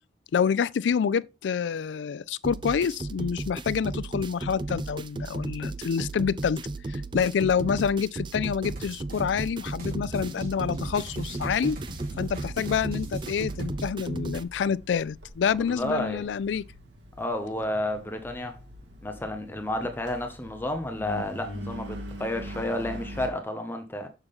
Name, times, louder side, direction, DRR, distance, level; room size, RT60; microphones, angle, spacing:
voice 1, 0.3-6.6 6.9-11.8 12.2-16.6, left 7 dB, 90° left, 0.4 m, -27 dB
sound 1, 2.4-14.4, right 2 dB, 25° right, 0.4 m, -35 dB
sound 2, 8.6-13.8, right 1 dB, 55° right, 3.5 m, -41 dB
Engine, 14.0-23.3, equal, 75° right, 2.0 m, -43 dB
voice 2, 15.7-16.2 17.2-18.6 19.0-24.1, left 1 dB, 10° left, 0.8 m, -31 dB
6.6 x 5.9 x 3.7 m
head